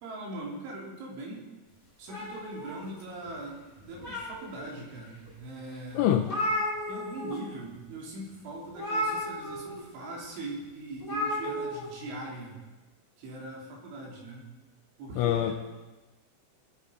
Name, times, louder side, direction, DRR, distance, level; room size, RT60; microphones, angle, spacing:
voice 1, 0.0-1.5 2.0-6.1 6.9-12.6 13.2-14.5 15.0-15.5, right 2 dB, 70° right, -3 dB, 5.3 m, -41 dB
sound 1, 2.1-3.3 3.8-4.7 5.3-5.4 5.7-5.8 6.0-7.4 7.6-7.9 8.7-9.8 11.0-11.8, equal, 10° left, 3.8 m, -33 dB
voice 2, 5.9-6.3 15.2-15.5, left 11 dB, 80° left, 6 dB, 2.9 m, -24 dB
21.0 x 9.1 x 5.1 m, 1.2 s
omnidirectional pair, 5.9 m